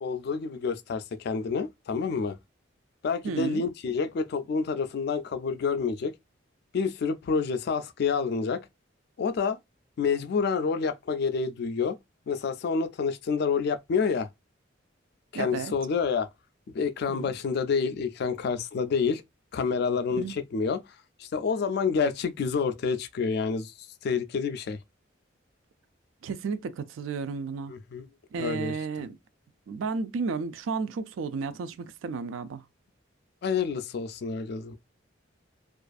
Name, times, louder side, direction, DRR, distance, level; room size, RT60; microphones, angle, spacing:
voice 1, 0.0-2.4 3.0-6.1 6.7-8.6 9.2-9.6 10.0-12.0 12.3-14.3 15.3-16.3 16.7-19.2 19.5-20.8 21.2-23.7 24.0-24.8 27.7-28.0 28.4-28.7 33.4-34.7, left 5 dB, 55° left, 0.3 m, -28 dB
voice 2, 3.2-3.6 15.3-15.7 17.1-17.3 20.1-20.4 26.2-27.7 28.3-29.2 29.7-32.6, right 5 dB, 85° right, 0.4 m, -33 dB
2.4 x 2.3 x 2.4 m
head